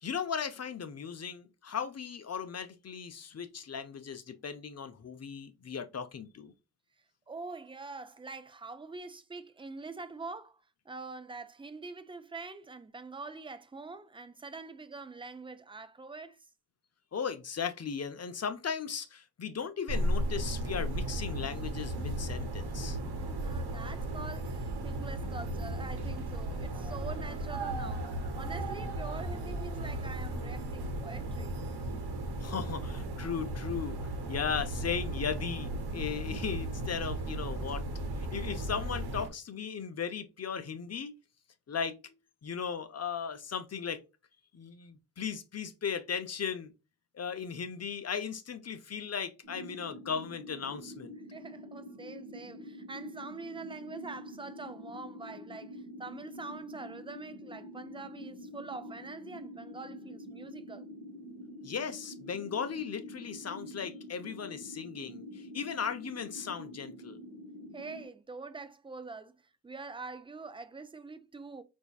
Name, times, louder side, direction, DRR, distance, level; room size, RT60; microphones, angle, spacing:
voice 1, 0.0-6.5 17.1-23.0 32.4-37.8 38.2-41.1 41.7-42.1 42.4-44.0 44.5-46.7 47.1-51.1 61.6-67.2, left 6 dB, 40° left, 0.6 m, -37 dB
voice 2, 7.3-16.4 23.2-28.1 28.4-31.5 51.3-60.9 67.7-69.4 69.6-71.6, right 3 dB, 15° right, 0.4 m, -44 dB
sound 1, 19.9-39.3, right 1 dB, 75° right, 1.0 m, -35 dB
sound 2, 49.4-68.1, left 1 dB, 10° left, 1.7 m, -46 dB
4.3 x 2.6 x 2.3 m
cardioid pair, 75°, 39 cm